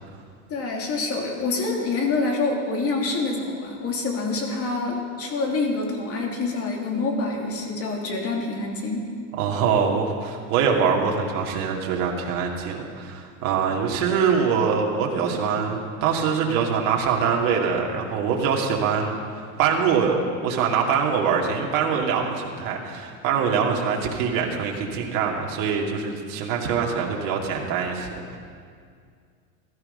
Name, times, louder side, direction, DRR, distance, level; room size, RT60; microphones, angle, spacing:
voice 1, 0.5-9.1, left 3 dB, 35° left, 0 dB, 2.9 m, -26 dB
voice 2, 9.4-20.2 20.4-28.4, right 6 dB, 50° right, 0 dB, 2.5 m, -24 dB
15.5 x 13.0 x 5.5 m, 2.2 s
supercardioid pair, 120°, 41 cm